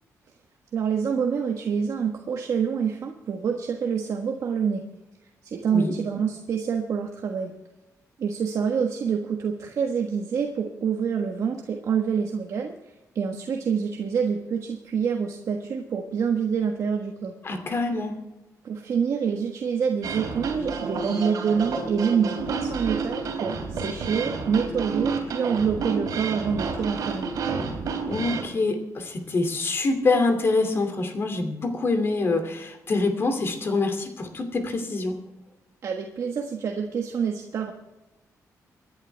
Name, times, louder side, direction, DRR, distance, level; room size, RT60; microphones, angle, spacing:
voice 1, 0.7-4.8 5.4-7.5 8.2-12.7 13.1-17.3 18.6-27.3 35.8-37.7, right 6 dB, 60° right, 2 dB, 1.4 m, -26 dB
voice 2, 17.4-18.1 28.1-35.2, left 3 dB, 40° left, 6 dB, 2.7 m, -25 dB
sound 1, 20.0-28.4, right 4 dB, 75° right, 3.4 m, -30 dB
25.5 x 11.0 x 3.5 m, 1.0 s
wide cardioid pair, 140°, 6 cm